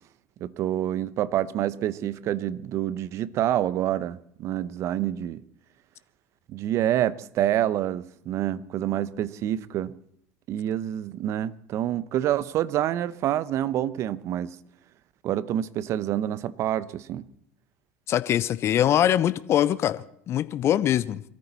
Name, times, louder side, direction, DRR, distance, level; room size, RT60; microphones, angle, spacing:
voice 1, 0.4-5.4 6.5-10.0 10.5-14.6 15.2-17.3, right 12 dB, 50° right, 0.9 m, -27 dB
voice 2, 18.1-21.2, left 11 dB, 45° left, 0.8 m, -23 dB
24.0 x 13.5 x 4.2 m
hypercardioid pair, 75°, 6 cm